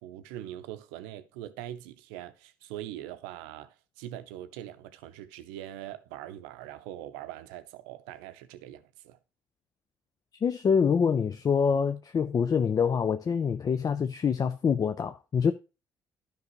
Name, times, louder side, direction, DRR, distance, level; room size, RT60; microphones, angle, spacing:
voice 1, 0.0-9.2, right 12 dB, 75° right, 0.6 m, -42 dB
voice 2, 10.4-15.5, left 6 dB, 35° left, 0.5 m, -25 dB
11.5 x 5.3 x 3.0 m
hypercardioid pair, 50°, 10 cm